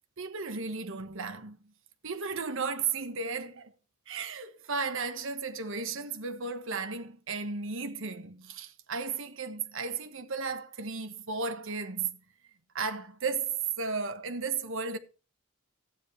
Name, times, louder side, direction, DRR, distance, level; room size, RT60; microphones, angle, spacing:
voice 1, 0.2-1.7 2.0-3.7 4.1-12.2 12.7-15.0, right 5 dB, 65° right, 1.3 m, -34 dB
14.0 x 9.6 x 3.2 m
head